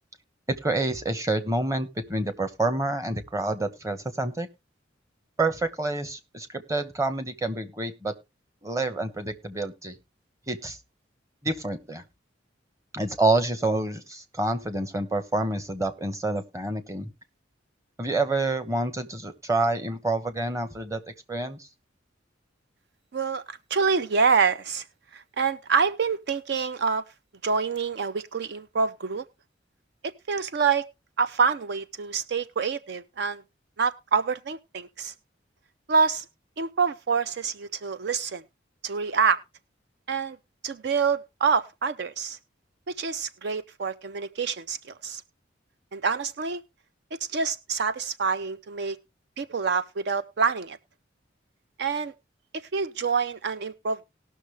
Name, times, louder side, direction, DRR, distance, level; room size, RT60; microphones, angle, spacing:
voice 1, 0.5-4.5 5.4-8.1 8.6-9.9 10.5-10.8 11.4-12.0 12.9-17.1 18.0-21.0 21.3-21.7, right 2 dB, 15° right, 9 dB, 1.2 m, -28 dB
voice 2, 23.1-24.8 25.1-27.0 27.4-29.2 30.3-30.9 31.2-33.4 33.8-35.1 35.9-36.2 36.6-38.4 38.8-39.4 40.1-40.4 40.6-42.4 43.0-45.2 45.9-46.6 47.3-49.0 49.4-50.8 51.8-52.1 52.5-54.0, right 5 dB, 60° right, 14 dB, 0.5 m, -26 dB
19.0 x 6.4 x 3.3 m, 0.25 s
head